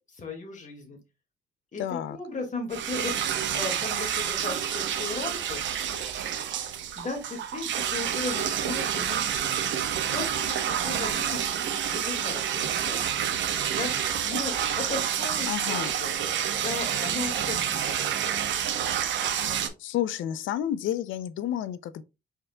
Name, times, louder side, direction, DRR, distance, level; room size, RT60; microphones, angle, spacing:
voice 1, 0.1-1.0 1.7-5.6 7.0-13.0 13.8-16.1 16.6-18.0, left 3 dB, 40° left, 2.0 m, -36 dB
voice 2, 1.8-2.2 15.5-15.9 19.8-22.0, left 11 dB, 75° left, 0.5 m, -30 dB
sound 1, 2.7-19.7, right 9 dB, 70° right, 0.8 m, -28 dB
4.9 x 4.5 x 2.2 m
cardioid pair, 90°, 20 cm